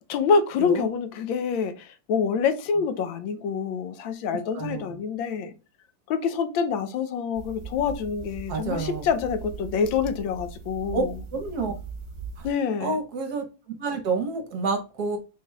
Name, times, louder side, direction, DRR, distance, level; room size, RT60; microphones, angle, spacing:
voice 1, 0.1-5.5 6.1-11.1 12.4-13.0, left 6 dB, 85° left, 1.4 m, -26 dB
voice 2, 0.6-0.9 4.5-5.0 8.5-9.1 10.9-11.0 11.3-11.7 12.4-12.5 12.8-13.4 13.8-15.2, right 4 dB, 60° right, 1.3 m, -29 dB
sound 1, 7.3-12.5, right 5 dB, 40° right, 1.5 m, -39 dB
4.8 x 4.2 x 2.3 m
omnidirectional pair, 2.1 m